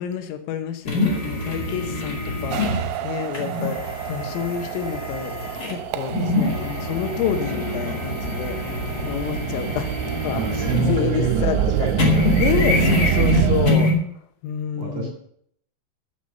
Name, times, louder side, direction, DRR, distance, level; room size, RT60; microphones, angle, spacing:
voice 1, 0.0-8.7 9.0-11.9 12.3-13.9 14.4-15.1, left 8 dB, 80° left, 7 dB, 3.7 m, -29 dB
sound 1, 0.8-11.3 11.6-13.9, left 2 dB, 50° left, 1.1 m, -25 dB
sound 2, 2.5-13.7, right 12 dB, 80° right, 2.7 m, -27 dB
voice 2, 10.3-12.4 13.3-13.5 14.7-15.1, right 6 dB, 55° right, -1 dB, 1.8 m, -26 dB
14.0 x 6.1 x 6.6 m, 0.67 s
omnidirectional pair, 6.0 m